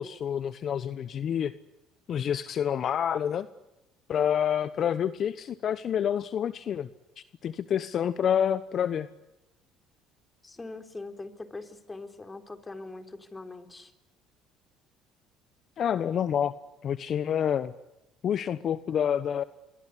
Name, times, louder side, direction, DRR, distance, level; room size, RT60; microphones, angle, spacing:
voice 1, 0.0-1.5 2.1-3.5 4.1-6.9 7.2-9.1 15.8-16.5 16.8-17.7 18.2-19.4, left 9 dB, 50° left, 14 dB, 1.1 m, -28 dB
voice 2, 10.4-13.9, left 3 dB, 20° left, 8 dB, 3.9 m, -42 dB
28.5 x 23.0 x 8.4 m, 0.97 s
supercardioid pair, 75°, 0 cm